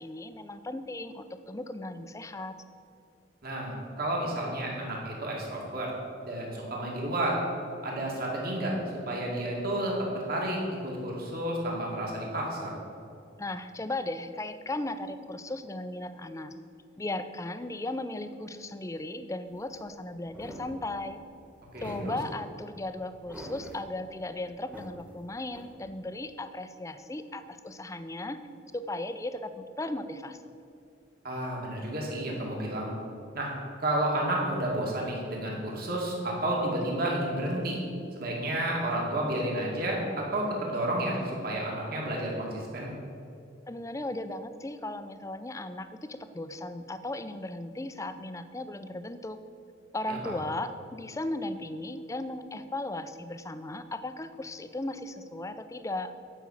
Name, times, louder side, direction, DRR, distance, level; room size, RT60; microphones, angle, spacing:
voice 1, 0.0-2.6 13.4-16.5 17.0-21.2 21.8-28.4 28.7-30.4 43.7-49.4 49.9-56.1, left 2 dB, 15° left, 11 dB, 0.4 m, -36 dB
voice 2, 3.4-5.9 6.3-7.4 7.8-8.8 9.0-12.7 21.7-22.2 31.2-32.9 33.3-33.5 33.8-37.8 38.1-42.9 50.1-50.3, right 1 dB, 50° right, -2 dB, 2.2 m, -31 dB
sound 1, 19.5-26.1, right 1 dB, 5° right, 1.2 m, -47 dB
9.6 x 6.0 x 7.3 m, 2.5 s
head